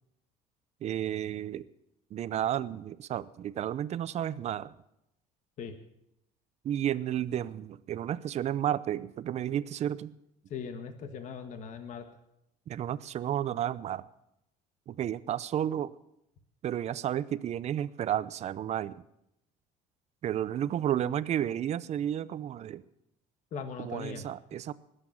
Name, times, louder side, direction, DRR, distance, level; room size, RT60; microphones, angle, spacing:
voice 1, 0.8-1.7 2.1-4.7 6.6-10.1 12.7-14.0 14.9-15.9 16.6-19.0 20.2-22.8 23.8-24.7, right 10 dB, 45° right, 17 dB, 0.6 m, -32 dB
voice 2, 10.5-12.0 23.5-24.3, left 6 dB, 50° left, 7 dB, 1.6 m, -39 dB
20.5 x 8.3 x 7.3 m, 0.84 s
cardioid pair, 120°, 16 cm